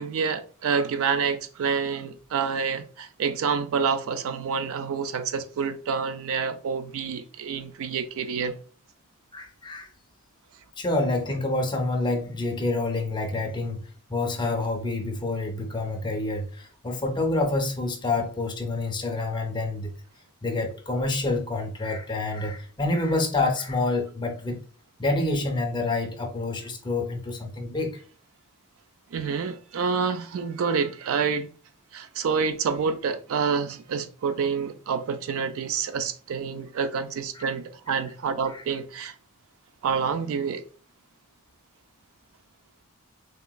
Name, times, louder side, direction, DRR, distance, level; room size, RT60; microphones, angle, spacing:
voice 1, 0.0-8.6 29.1-31.5 31.9-39.1 39.8-40.6, right 6 dB, 65° right, 0.3 m, -28 dB
voice 2, 9.3-9.9 10.8-19.9 20.4-24.6 25.0-27.9 37.3-37.5 38.5-38.6, left 2 dB, 20° left, 0.5 m, -27 dB
3.2 x 2.9 x 2.2 m
head